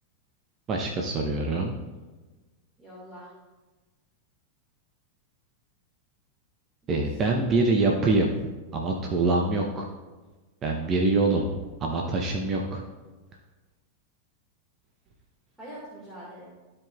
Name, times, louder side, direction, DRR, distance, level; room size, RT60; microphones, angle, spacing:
voice 1, 0.7-1.8 6.9-8.3 8.7-9.9 10.6-11.5 11.8-12.8, right 3 dB, 30° right, 0 dB, 0.8 m, -25 dB
voice 2, 2.8-3.4 6.8-7.8 15.6-16.5, equal, 10° right, -8 dB, 2.2 m, -45 dB
13.0 x 4.8 x 2.5 m, 1.2 s
figure-of-eight pair, 90°, 0 cm